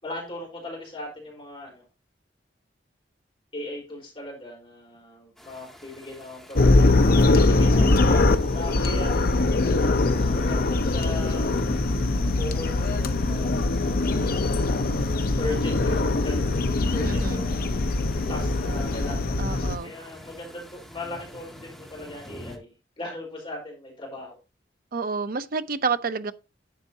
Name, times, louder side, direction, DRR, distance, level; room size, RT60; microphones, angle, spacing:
voice 1, 0.0-1.8 3.5-10.0 10.3-11.5 12.4-14.6 15.4-16.4 16.9-17.8 18.3-22.7 23.0-24.4, left 2 dB, 30° left, 4.4 m, -38 dB
sound 1, 5.4-22.6, equal, ahead, 1.9 m, -47 dB
sound 2, 6.6-19.8, left 2 dB, 55° left, 0.7 m, -22 dB
voice 2, 17.1-17.4 19.4-19.9 24.9-26.3, right 4 dB, 50° right, 0.7 m, -29 dB
11.0 x 8.0 x 2.8 m
head